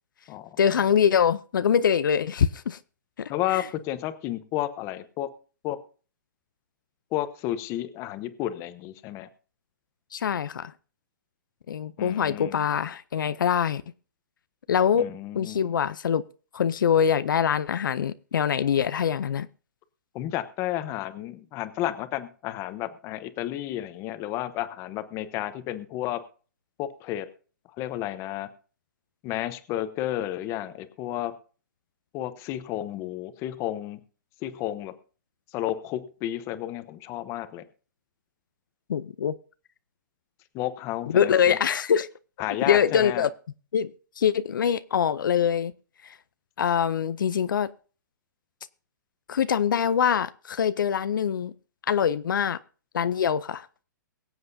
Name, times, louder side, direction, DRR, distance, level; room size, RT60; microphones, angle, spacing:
voice 1, 0.6-2.8 3.2-3.6 10.1-10.7 11.7-13.8 14.7-15.1 15.4-16.2 16.5-19.5 38.9-39.3 41.1-42.1 42.7-43.3 43.7-43.9 44.2-45.7 46.0-46.2 46.6-47.7 49.3-51.5 51.9-52.6 52.9-53.8, left 8 dB, 80° left, 0.5 m, -24 dB
voice 2, 3.3-5.3 5.6-5.8 7.1-9.3 12.0-12.6 14.9-15.7 20.1-26.2 26.8-27.3 27.8-28.5 29.2-31.3 32.1-34.0 34.4-34.9 35.5-37.7 40.5-41.6 42.4-43.2, left 13 dB, 25° left, 0.9 m, -32 dB
23.0 x 7.9 x 2.7 m
hypercardioid pair, 145°, 11 cm